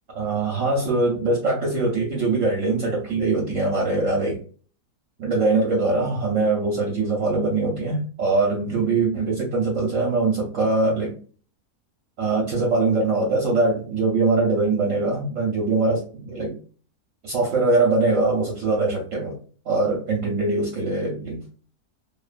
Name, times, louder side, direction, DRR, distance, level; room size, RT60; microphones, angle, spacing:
voice 1, 0.1-4.4 5.2-11.1 12.2-16.6 17.2-19.4 19.7-21.5, right 3 dB, 65° right, -1 dB, 0.9 m, -22 dB
2.5 x 2.3 x 2.3 m, 0.41 s
omnidirectional pair, 1.7 m